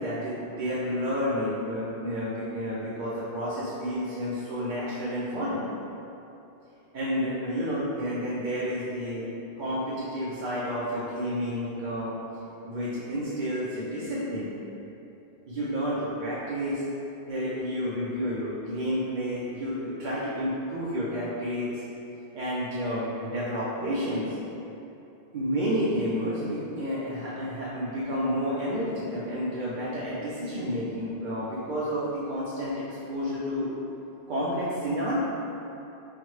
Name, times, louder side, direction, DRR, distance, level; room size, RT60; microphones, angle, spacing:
voice 1, 0.0-5.6 6.9-9.3 9.6-12.1 12.6-14.5 15.5-16.8 17.3-21.8 22.3-24.3 25.3-33.7 34.3-35.2, equal, 55° right, -8 dB, 0.7 m, -30 dB
5.6 x 2.1 x 3.1 m, 2.9 s
omnidirectional pair, 1.1 m